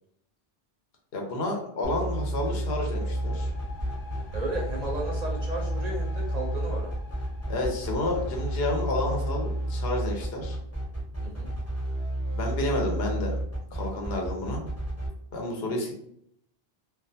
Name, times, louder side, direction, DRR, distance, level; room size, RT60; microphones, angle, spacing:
voice 1, 1.1-3.5 7.5-10.6 12.3-13.3 13.7-14.6 15.3-15.9, left 1 dB, 75° left, 0 dB, 0.9 m, -30 dB
sound 1, 1.8-15.1, right 1 dB, 15° left, 0.8 m, -31 dB
sound 2, 2.7-10.5, left 1 dB, 45° left, 0.6 m, -40 dB
voice 2, 4.3-7.0 11.2-11.5, right 1 dB, 50° right, -1 dB, 0.5 m, -34 dB
2.3 x 2.2 x 2.6 m, 0.69 s
omnidirectional pair, 1.0 m